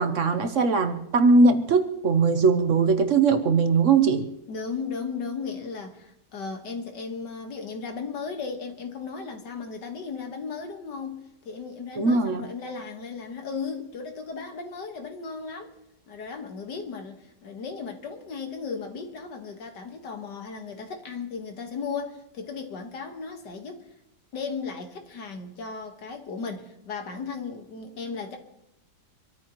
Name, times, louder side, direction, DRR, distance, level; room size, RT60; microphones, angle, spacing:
voice 1, 0.0-4.3 12.0-12.5, right 4 dB, 55° right, 1.0 m, -20 dB
voice 2, 4.5-15.7 16.1-23.8 24.3-28.4, left 5 dB, 85° left, 2.1 m, -36 dB
25.5 x 13.5 x 3.0 m
omnidirectional pair, 1.8 m